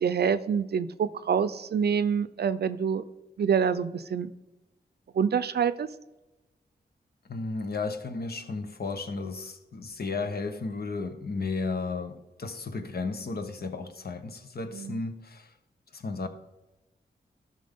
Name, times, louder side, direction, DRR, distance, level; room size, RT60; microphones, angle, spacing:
voice 1, 0.0-3.0 3.4-4.3 5.1-5.9 14.7-15.0, right 7 dB, 65° right, 0.5 m, -26 dB
voice 2, 7.3-15.5 15.9-16.3, left 3 dB, 60° left, 1.0 m, -34 dB
12.5 x 6.0 x 3.6 m
cardioid pair, 55°, 18 cm